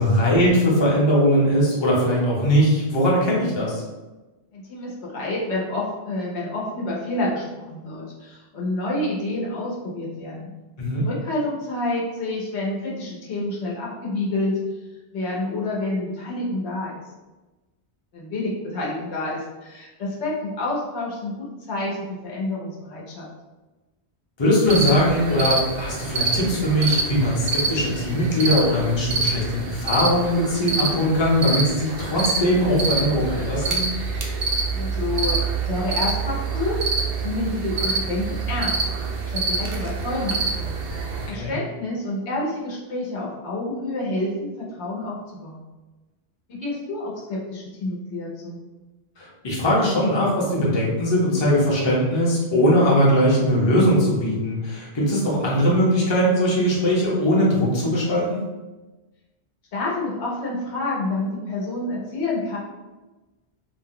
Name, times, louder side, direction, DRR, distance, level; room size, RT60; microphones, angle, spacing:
voice 1, 0.0-3.8 10.8-11.1 24.4-33.9 41.3-41.5 49.2-58.4, equal, 30° left, -5 dB, 0.7 m, -20 dB
voice 2, 4.5-10.5 11.0-14.5 15.1-17.0 18.1-23.3 34.7-36.8 37.2-38.8 39.3-40.9 41.3-45.6 46.5-48.6 59.7-62.6, left 2 dB, 80° left, -5 dB, 1.1 m, -28 dB
sound 1, 24.6-41.3, right 4 dB, 65° right, 0.7 m, -26 dB
2.6 x 2.2 x 3.6 m, 1.1 s
omnidirectional pair, 1.1 m